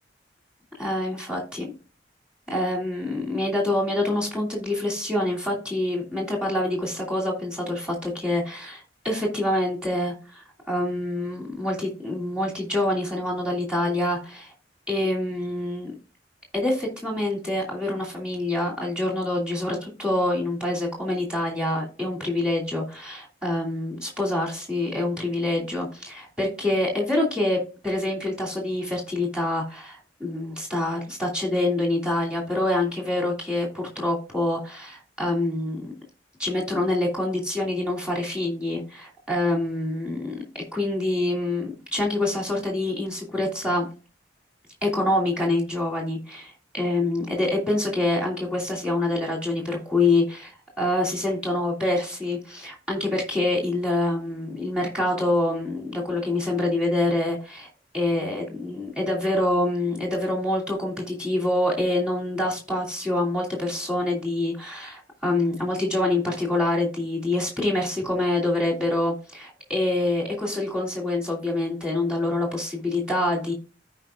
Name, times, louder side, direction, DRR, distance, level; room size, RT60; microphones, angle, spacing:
voice 1, 0.8-1.7 2.5-14.5 14.9-15.9 16.5-35.9 36.4-40.4 40.7-43.9 44.8-50.5 50.8-57.7 57.9-73.5, left 2 dB, 5° right, -1 dB, 2.7 m, -26 dB
14.0 x 5.1 x 2.5 m, 0.33 s
head